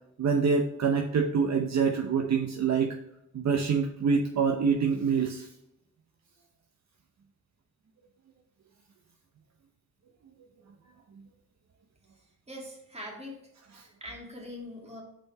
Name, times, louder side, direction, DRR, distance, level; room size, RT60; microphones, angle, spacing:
voice 1, 0.2-3.0 3.3-5.5, right 5 dB, 55° right, 2 dB, 0.8 m, -26 dB
voice 2, 12.5-13.4 13.8-15.0, left 1 dB, 20° right, -1 dB, 2.3 m, -42 dB
5.2 x 4.3 x 5.5 m, 0.84 s
cardioid pair, 70°, 32 cm